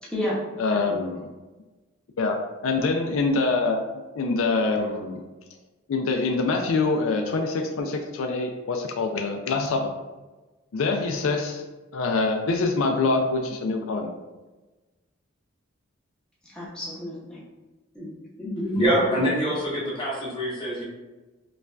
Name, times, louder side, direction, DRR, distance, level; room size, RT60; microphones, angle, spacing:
voice 1, 0.0-0.4 0.7-1.0 16.5-17.4 17.9-18.1 18.4-19.2, equal, 5° left, -8 dB, 0.8 m, -31 dB
voice 2, 0.6-1.3 2.2-3.8 4.2-5.2 5.9-9.9 10.7-11.6 11.9-14.1, left 3 dB, 80° left, 3 dB, 0.4 m, -25 dB
voice 3, 18.7-20.8, equal, 25° left, -7 dB, 1.3 m, -24 dB
5.3 x 2.3 x 2.4 m, 1.2 s
head